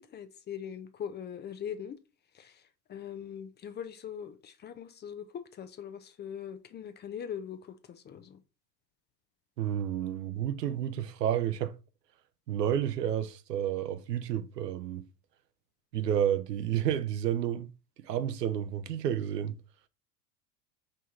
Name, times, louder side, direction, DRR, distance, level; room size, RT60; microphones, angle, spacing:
voice 1, 0.1-2.0 2.3-2.6 2.9-8.4, left 8 dB, 25° left, 0.5 m, -41 dB
voice 2, 9.6-11.8 12.5-15.1 15.9-17.7 18.0-19.6, right 10 dB, 90° right, 0.6 m, -30 dB
5.1 x 2.9 x 3.6 m
hypercardioid pair, 85°, 47 cm